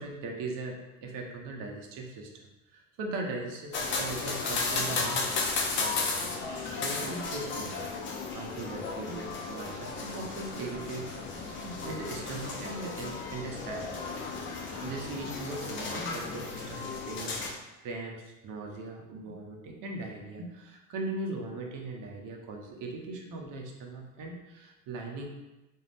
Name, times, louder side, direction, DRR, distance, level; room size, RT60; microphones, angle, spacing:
voice 1, 0.0-2.4 2.7-5.3 5.8-8.0 8.3-11.1 11.4-13.9 14.8-25.2, right 2 dB, 45° right, 1 dB, 0.6 m, -39 dB
sound 1, 3.7-17.5, left 4 dB, 30° left, 0.4 m, -34 dB
2.5 x 2.2 x 3.3 m, 1.0 s
supercardioid pair, 95°, 45 cm